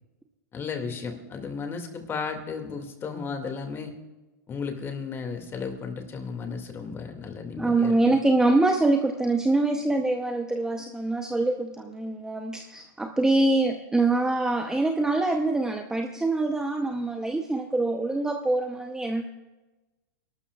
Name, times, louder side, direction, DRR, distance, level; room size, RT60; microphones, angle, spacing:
voice 1, 0.5-3.9 4.5-8.0, left 5 dB, 25° left, 5 dB, 2.2 m, -34 dB
voice 2, 7.6-19.3, right 2 dB, 5° right, 4 dB, 0.7 m, -24 dB
28.0 x 12.5 x 2.4 m, 1.1 s
hypercardioid pair, 125°, 10 cm